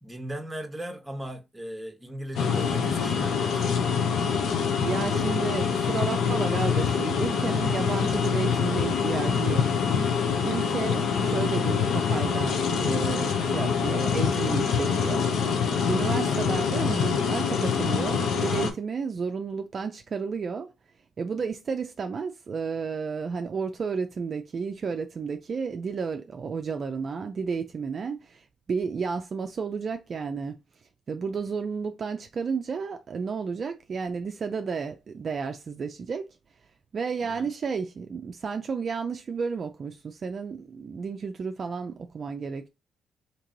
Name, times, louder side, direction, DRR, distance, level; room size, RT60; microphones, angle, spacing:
voice 1, 0.0-3.7 37.2-37.5, right 1 dB, 10° right, 1.0 m, -38 dB
sound 1, 2.3-18.7, left 6 dB, 70° left, 0.8 m, -25 dB
voice 2, 4.8-9.7 10.4-15.3 15.6-20.7 21.2-30.5 31.1-36.3 36.9-42.7, right 5 dB, 45° right, 0.4 m, -32 dB
3.0 x 2.9 x 3.8 m
cardioid pair, 90°, 0 cm